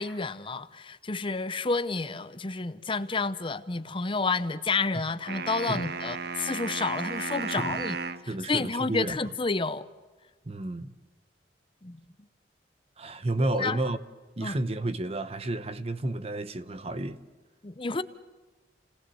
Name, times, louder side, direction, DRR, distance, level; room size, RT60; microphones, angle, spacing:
voice 1, 0.0-8.0 8.5-9.9 11.8-12.0 13.4-13.8 14.4-14.6 17.6-18.0, left 3 dB, 30° left, 0.7 m, -30 dB
sound 1, 5.3-8.3, right 4 dB, 60° right, 0.8 m, -34 dB
voice 2, 8.3-9.2 10.4-10.9 13.0-14.0 14.4-17.2, right 2 dB, 35° right, 0.9 m, -31 dB
30.0 x 18.5 x 7.9 m
head